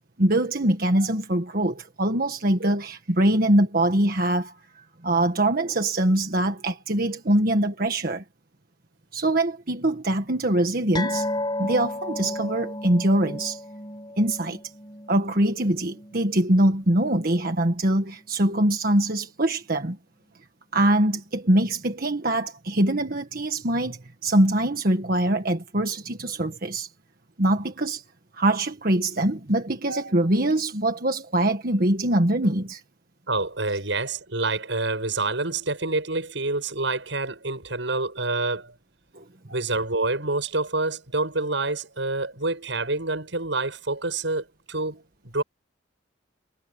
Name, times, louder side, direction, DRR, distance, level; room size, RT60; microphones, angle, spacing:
voice 1, 0.2-8.2 9.1-11.3 11.6-13.6 14.2-14.6 15.1-20.0 20.7-26.9 27.4-28.0 28.3-32.8 39.1-39.5, right 1 dB, 50° right, 1.6 m, -23 dB
sound 1, 10.9-17.8 18.0-18.3 18.6-18.7, left 1 dB, 25° left, 6.4 m, -34 dB
voice 2, 33.3-38.7 39.5-45.4, right 3 dB, 80° right, 6.8 m, -27 dB
head